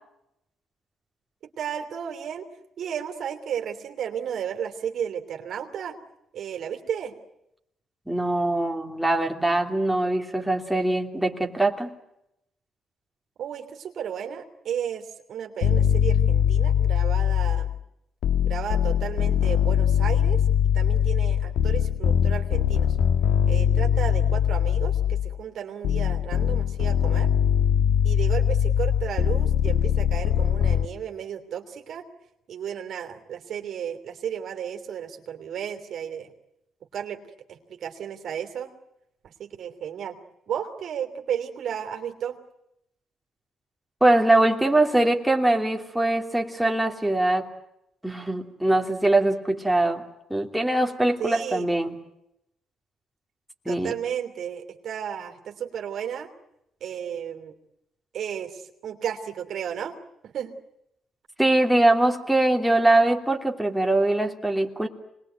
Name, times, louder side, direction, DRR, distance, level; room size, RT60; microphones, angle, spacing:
voice 1, 1.4-2.5 2.8-6.0 6.3-7.2 13.4-17.8 18.4-20.4 20.7-23.0 23.5-27.3 28.0-32.0 32.5-36.3 36.9-37.2 37.5-38.7 39.2-40.2 40.5-42.4 51.2-51.7 53.7-56.3 56.8-57.5 58.1-60.0 60.2-60.6, right 8 dB, 65° right, 5 dB, 3.0 m, -33 dB
voice 2, 8.1-11.9 44.0-47.5 48.0-50.0 50.3-52.0 53.6-53.9 61.4-64.9, right 2 dB, 5° right, 2 dB, 3.0 m, -22 dB
sound 1, 15.6-17.8 18.2-25.3 25.8-30.8, left 9 dB, 85° left, 1.3 m, -22 dB
25.5 x 21.0 x 9.3 m, 0.84 s
cardioid pair, 90°, 0 cm